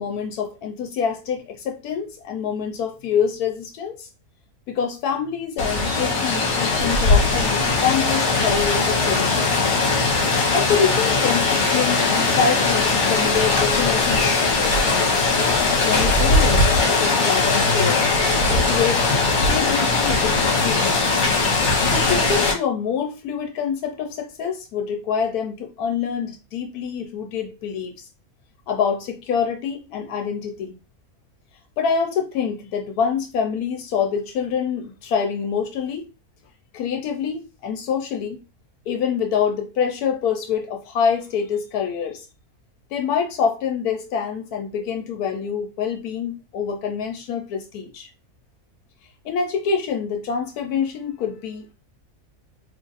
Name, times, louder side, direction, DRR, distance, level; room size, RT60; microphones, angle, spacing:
voice 1, 0.0-4.1 4.7-9.5 10.5-12.1 12.4-14.8 15.8-18.0 18.5-19.1 19.5-21.0 21.9-27.9 28.7-30.7 31.8-36.0 36.7-38.4 38.9-42.3 42.9-48.1 49.2-51.7, left 7 dB, 85° left, 1.1 m, -26 dB
Rain, 5.6-22.5, left 3 dB, 55° left, 1.3 m, -19 dB
2.9 x 2.5 x 3.9 m
omnidirectional pair, 1.6 m